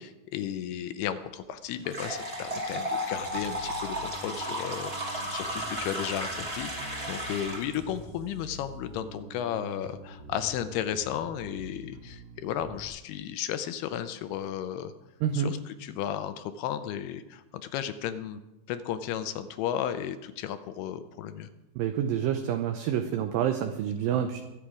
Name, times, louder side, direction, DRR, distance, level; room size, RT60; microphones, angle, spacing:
voice 1, 0.0-14.9 15.3-18.4 18.7-21.5, left 10 dB, 80° left, 10 dB, 2.6 m, -34 dB
sound 1, 1.8-7.8, equal, 25° right, 1.3 m, -34 dB
Bass guitar, 3.3-12.9, right 1 dB, 55° right, 1.9 m, -46 dB
voice 2, 15.2-15.5 21.8-24.4, right 9 dB, 75° right, 7 dB, 2.1 m, -28 dB
22.5 x 8.3 x 4.9 m, 0.99 s
omnidirectional pair, 4.8 m